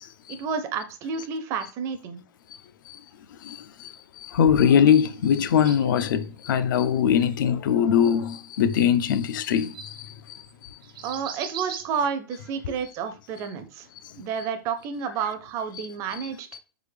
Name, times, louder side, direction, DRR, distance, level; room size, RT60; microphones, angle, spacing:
voice 1, 0.3-2.2 11.0-13.9 14.2-16.5, right 6 dB, 25° right, 0.4 m, -30 dB
voice 2, 4.3-9.7, left 8 dB, 65° left, 0.4 m, -21 dB
sound 1, 5.0-6.1 7.3-7.5 8.1-8.2 9.4-9.5 9.7-10.1 10.5-10.6 10.8-11.9, right 8 dB, 75° right, 0.8 m, -40 dB
4.0 x 3.5 x 3.3 m
hypercardioid pair, 155°, 12 cm